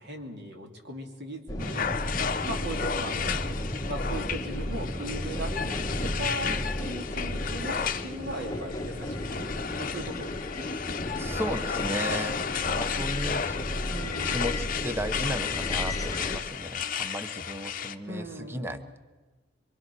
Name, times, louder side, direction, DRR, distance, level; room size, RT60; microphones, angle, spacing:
voice 1, 0.0-1.9 2.5-3.4 3.9-10.7 13.9-14.5 18.1-18.9, right 1 dB, 60° right, 3 dB, 3.0 m, -38 dB
sound 1, 1.5-16.4, left 1 dB, 20° left, 1.6 m, -33 dB
sound 2, 1.6-18.0, left 7 dB, 45° left, 0.8 m, -33 dB
voice 2, 11.2-12.4 12.7-13.5 14.2-18.8, equal, 10° right, 9 dB, 1.0 m, -35 dB
25.0 x 24.0 x 6.2 m, 1.3 s
head